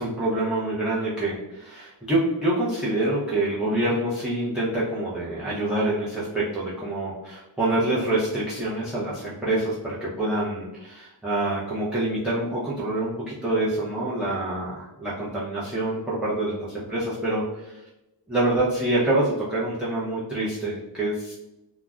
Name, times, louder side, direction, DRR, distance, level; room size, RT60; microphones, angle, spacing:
voice 1, 0.0-17.8 18.3-21.3, right 1 dB, ahead, -9 dB, 0.5 m, -26 dB
2.3 x 2.0 x 3.4 m, 0.97 s
wide cardioid pair, 115°, 45 cm